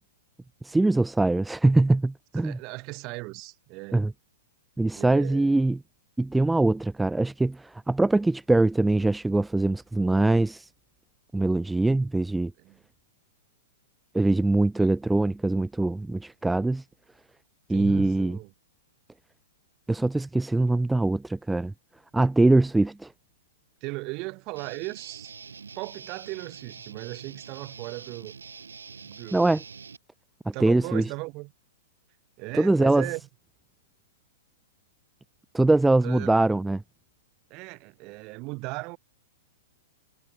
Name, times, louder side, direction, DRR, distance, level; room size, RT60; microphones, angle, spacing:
voice 1, 0.6-2.6 3.9-4.1 4.8-5.8 6.2-10.7 11.3-12.5 14.1-16.8 17.7-18.4 19.9-21.7 22.1-23.1 29.3-29.6 30.4-31.0 32.6-33.1 35.5-36.8, right 2 dB, 5° right, 1.3 m, -23 dB
voice 2, 2.4-4.0 4.9-5.6 12.6-12.8 14.8-14.9 17.7-18.5 23.8-25.3 25.7-28.4 29.0-29.6 30.5-31.5 32.4-33.2 36.0-36.3 37.5-39.0, right 26 dB, 40° right, 4.8 m, -37 dB
Guitar, 24.6-30.0, right 5 dB, 90° right, 7.6 m, -45 dB
hypercardioid pair, 120°, 0 cm